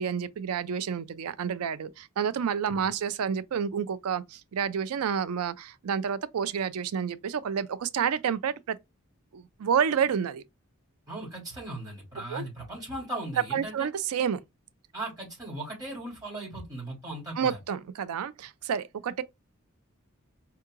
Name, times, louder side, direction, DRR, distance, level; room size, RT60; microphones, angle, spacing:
voice 1, 0.0-8.8 9.3-10.4 12.3-12.4 13.5-14.4 17.4-19.2, right 7 dB, 90° right, 0.4 m, -29 dB
voice 2, 11.1-13.9 14.9-17.6, right 1 dB, 15° right, 2.8 m, -38 dB
4.5 x 2.8 x 2.4 m
head